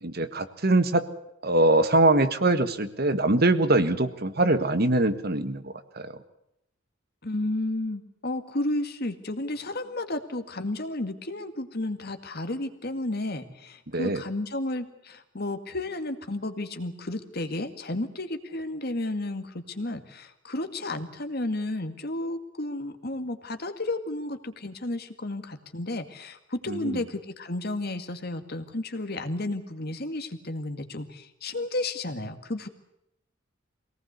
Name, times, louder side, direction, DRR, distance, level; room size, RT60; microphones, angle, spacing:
voice 1, 0.0-1.0 1.4-6.1 13.9-14.2 26.7-27.0, right 2 dB, 50° right, 10 dB, 1.6 m, -23 dB
voice 2, 7.2-32.7, left 2 dB, 55° left, 8 dB, 2.1 m, -32 dB
24.0 x 18.5 x 8.2 m, 0.81 s
head